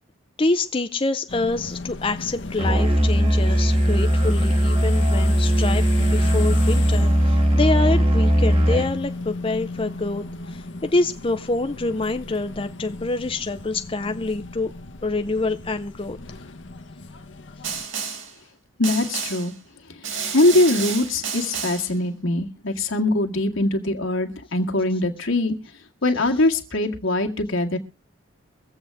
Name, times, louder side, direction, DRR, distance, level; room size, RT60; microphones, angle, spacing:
voice 1, 0.4-14.7 15.0-16.2, left 2 dB, 25° left, 0.6 m, -26 dB
sound 1, 1.3-17.8, left 2 dB, 65° left, 1.1 m, -35 dB
Musical instrument, 2.6-9.0, equal, 30° right, 1.3 m, -19 dB
Snare drum, 17.6-18.3 18.8-19.5 20.0-21.9, right 6 dB, 70° right, 4.1 m, -30 dB
voice 2, 18.8-19.5 20.3-25.5 26.0-27.8, left 2 dB, 80° left, 2.0 m, -22 dB
23.5 x 8.1 x 3.5 m
head